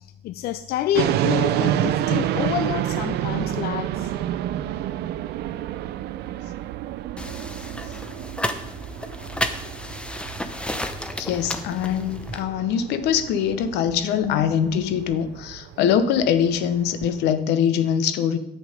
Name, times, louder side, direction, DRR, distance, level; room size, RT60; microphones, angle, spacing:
voice 1, 0.0-4.1, left 11 dB, 70° left, 12 dB, 0.5 m, -28 dB
sound 1, 0.9-17.2, right 12 dB, 75° right, 0.6 m, -29 dB
sound 2, 7.2-12.4, left 1 dB, 5° left, 0.8 m, -32 dB
voice 2, 11.2-18.4, left 8 dB, 85° left, 12 dB, 0.9 m, -23 dB
9.8 x 7.8 x 5.1 m, 0.85 s
cardioid pair, 110°, 17 cm